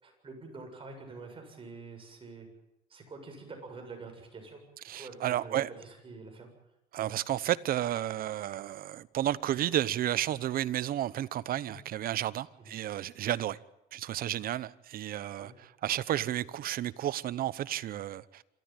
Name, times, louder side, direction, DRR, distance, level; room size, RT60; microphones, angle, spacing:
voice 1, 0.0-2.5 2.9-4.6 4.9-6.5 7.0-7.1 11.7-11.8 12.6-12.7 15.4-15.5, right 3 dB, 30° right, 7.4 m, -46 dB
voice 2, 4.9-5.7 6.9-13.6 13.9-15.5 15.8-18.4, right 12 dB, 60° right, 0.9 m, -32 dB
27.5 x 14.0 x 9.1 m
cardioid pair, 110°, 17 cm